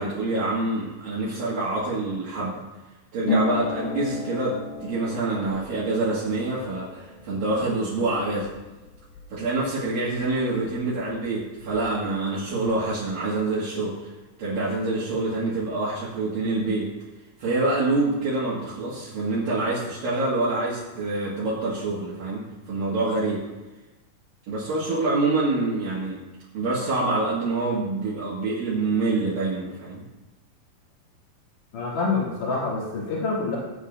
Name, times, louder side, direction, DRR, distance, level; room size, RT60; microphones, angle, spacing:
voice 1, 0.0-2.6 3.1-8.5 9.3-14.1 14.4-16.9 17.4-23.4 24.5-26.2 26.5-30.0, right 2 dB, 65° right, -10 dB, 3.7 m, -26 dB
Harp, 3.2-10.7 11.0-12.1 12.4-13.0, left 5 dB, 75° left, 1.7 m, -34 dB
voice 2, 31.7-33.6, left 3 dB, 55° left, -6 dB, 4.4 m, -26 dB
18.5 x 8.2 x 2.7 m, 1.1 s
omnidirectional pair, 4.5 m